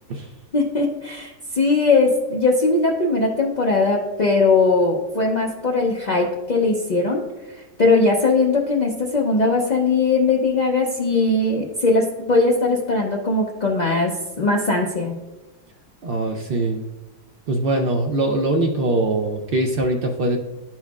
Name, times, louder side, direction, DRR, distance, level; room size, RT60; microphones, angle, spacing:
voice 1, 0.5-7.2 7.8-14.1 14.4-15.1, left 3 dB, 65° left, -1 dB, 0.4 m, -19 dB
voice 2, 16.0-16.8 17.5-20.4, right 2 dB, 75° right, 1 dB, 0.5 m, -22 dB
11.5 x 4.3 x 2.3 m, 1.1 s
omnidirectional pair, 1.6 m